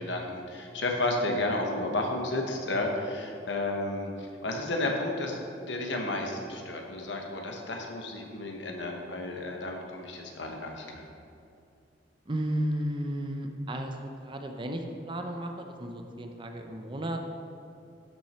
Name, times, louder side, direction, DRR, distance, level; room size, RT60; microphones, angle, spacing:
voice 1, 0.0-11.0, left 2 dB, 70° left, 1 dB, 1.3 m, -32 dB
voice 2, 12.3-17.2, right 1 dB, 25° right, 4 dB, 0.7 m, -33 dB
12.5 x 6.1 x 4.4 m, 2.6 s
head